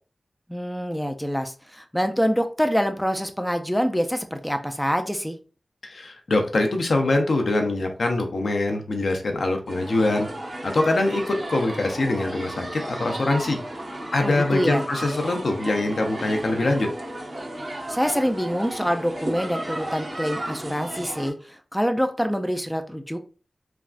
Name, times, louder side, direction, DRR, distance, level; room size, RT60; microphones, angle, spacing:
voice 1, 0.5-5.4 14.2-14.8 17.9-23.2, equal, 5° left, 7 dB, 0.3 m, -25 dB
voice 2, 5.8-10.3 10.6-13.6 14.1-16.9, left 2 dB, 75° left, 4 dB, 0.5 m, -23 dB
sound 1, 9.7-21.3, right 1 dB, 45° right, 0.9 m, -34 dB
3.3 x 2.3 x 2.4 m, 0.37 s
wide cardioid pair, 80°, 0 cm